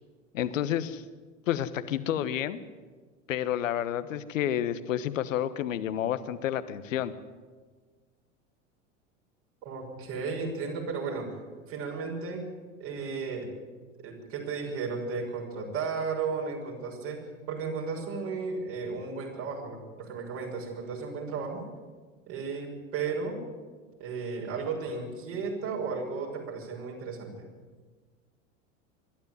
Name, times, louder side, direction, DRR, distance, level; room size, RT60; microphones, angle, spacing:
voice 1, 0.3-1.0 1.5-2.6 3.3-7.1, left 10 dB, 75° left, 13 dB, 1.3 m, -30 dB
voice 2, 9.6-11.3 11.7-12.5 12.8-13.5 14.0-21.7 22.3-23.4 24.0-27.5, right 4 dB, 65° right, -2 dB, 6.3 m, -34 dB
25.5 x 12.5 x 9.5 m, 1.4 s
hypercardioid pair, 80°, 39 cm